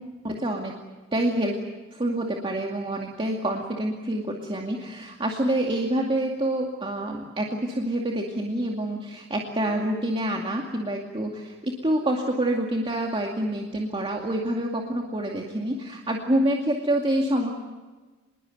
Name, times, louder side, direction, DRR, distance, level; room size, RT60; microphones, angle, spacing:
voice 1, 0.2-0.8 1.1-1.6 1.9-17.5, right 1 dB, 25° right, 0 dB, 2.4 m, -27 dB
26.0 x 21.5 x 8.0 m, 1.3 s
head